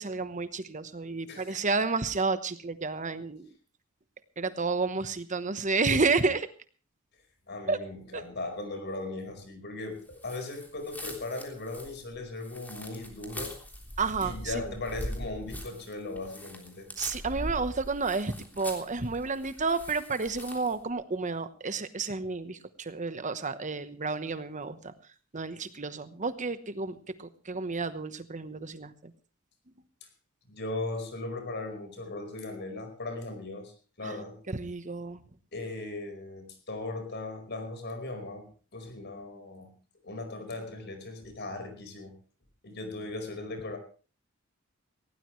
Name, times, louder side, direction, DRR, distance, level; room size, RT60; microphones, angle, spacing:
voice 1, 0.0-3.5 4.4-6.5 7.7-7.8 8.1-8.2 14.0-14.4 17.0-24.8 25.3-28.9 34.0-34.1 34.5-35.2, right 4 dB, 35° right, 12 dB, 1.1 m, -31 dB
voice 2, 1.3-1.6 7.5-13.5 14.2-16.9 30.5-33.7 34.0-34.4 35.5-39.7 40.0-42.2 42.6-43.8, left 2 dB, 55° left, 7 dB, 4.8 m, -38 dB
sound 1, 10.2-20.8, equal, 10° left, 3.4 m, -42 dB
19.0 x 17.5 x 3.2 m, 0.38 s
head